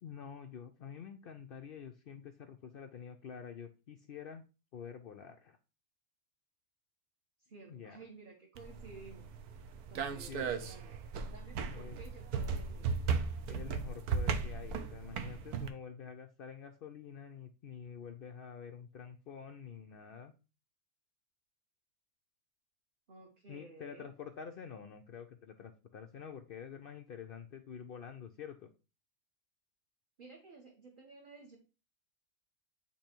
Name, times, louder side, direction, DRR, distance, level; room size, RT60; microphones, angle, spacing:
voice 1, 0.0-4.4 4.7-5.6 7.7-8.1 10.3-10.7 11.7-12.0 13.5-20.3 23.5-28.7, left 7 dB, 75° left, 6 dB, 0.5 m, -48 dB
voice 2, 7.4-11.0 11.3-13.0 23.1-24.1 30.2-31.6, right 3 dB, 40° right, 1 dB, 1.1 m, -54 dB
sound 1, 8.5-15.7, right 5 dB, 90° right, 1.2 m, -36 dB
8.4 x 3.1 x 4.4 m, 0.32 s
omnidirectional pair, 1.6 m